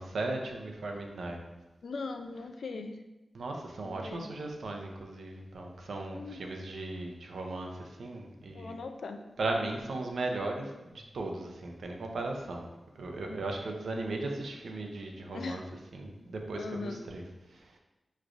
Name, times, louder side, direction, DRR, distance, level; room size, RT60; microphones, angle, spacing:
voice 1, 0.0-1.4 3.3-8.7 9.4-12.7 13.0-15.6 15.9-17.2 17.5-17.8, right 2 dB, 85° right, 2 dB, 0.6 m, -37 dB
voice 2, 1.8-3.0 3.8-4.3 6.1-6.4 8.5-9.2 13.3-13.4 15.3-15.6 16.5-17.0, left 3 dB, 85° left, 6 dB, 0.4 m, -39 dB
6.0 x 3.2 x 2.5 m, 1.0 s
cardioid pair, 70°, 0 cm